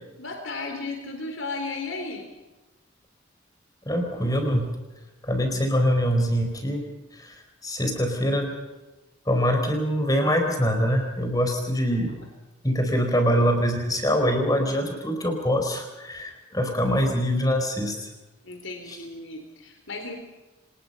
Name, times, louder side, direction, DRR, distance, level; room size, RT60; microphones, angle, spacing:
voice 1, 0.2-2.2 18.4-20.2, left 3 dB, 85° left, 3 dB, 3.9 m, -34 dB
voice 2, 3.9-4.7 5.3-6.8 7.2-7.3 7.6-8.5 9.3-12.2 12.6-18.1, equal, 20° left, 4 dB, 4.5 m, -24 dB
26.0 x 20.0 x 5.6 m, 1.1 s
head